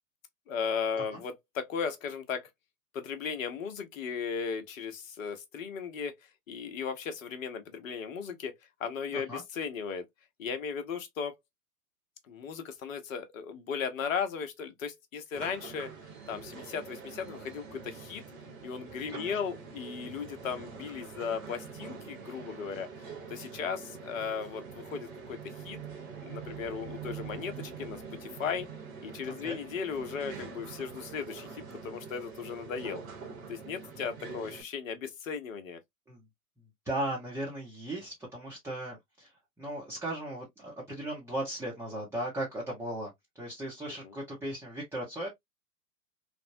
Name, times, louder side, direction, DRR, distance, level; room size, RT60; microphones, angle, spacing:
voice 1, 0.5-2.5 2.9-6.2 6.5-10.0 10.4-11.4 12.3-15.9 16.3-18.2 18.6-22.9 23.3-25.4 25.6-25.8 26.2-28.7 29.0-33.0 33.5-35.8 44.0-44.1, left 6 dB, 60° left, 0.9 m, -36 dB
sound 1, 15.3-34.6, right 5 dB, 60° right, 1.3 m, -45 dB
voice 2, 29.2-29.6 36.1-36.2 36.8-39.3 39.6-45.3, right 1 dB, 5° right, 0.7 m, -37 dB
3.3 x 2.0 x 2.6 m
figure-of-eight pair, 105°, 46 cm